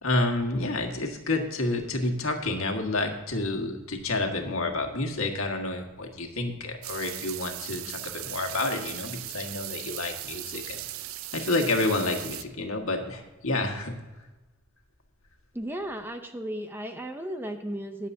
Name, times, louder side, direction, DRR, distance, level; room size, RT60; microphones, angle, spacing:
voice 1, 0.0-10.8 11.3-13.9, left 2 dB, 90° left, 3 dB, 1.7 m, -29 dB
sound 1, 6.8-12.4, right 14 dB, 85° right, 0.5 m, -38 dB
voice 2, 15.5-18.1, right 1 dB, 10° right, 6 dB, 0.6 m, -35 dB
21.0 x 7.3 x 2.7 m, 1.2 s
head